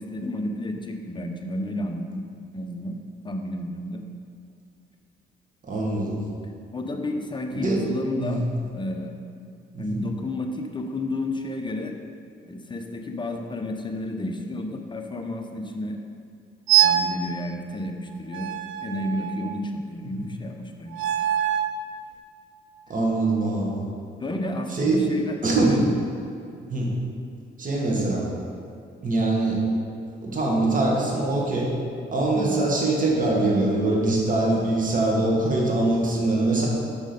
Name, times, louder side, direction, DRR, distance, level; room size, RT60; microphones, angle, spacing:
voice 1, 0.0-2.2 2.5-3.0 3.2-4.0 6.7-8.4 8.7-9.2 9.8-12.0 12.5-16.0 16.8-18.5 18.8-21.0 24.2-25.4 25.7-26.0 32.3-32.7, left 1 dB, 25° left, 4 dB, 0.8 m, -31 dB
voice 2, 5.6-6.2 7.5-7.8 8.2-8.5 9.7-10.0 20.2-20.3 22.9-23.9 24.7-25.1 25.4-25.8 26.7-26.9 27.6-28.3 29.0-29.6 30.2-31.7 32.1-36.7, right 2 dB, 40° right, -3 dB, 1.9 m, -23 dB
sound 1, 16.7-17.2 18.3-19.6 20.9-21.8, right 11 dB, 85° right, 0.4 m, -23 dB
6.3 x 6.2 x 5.3 m, 2.5 s
cardioid pair, 90°, 20 cm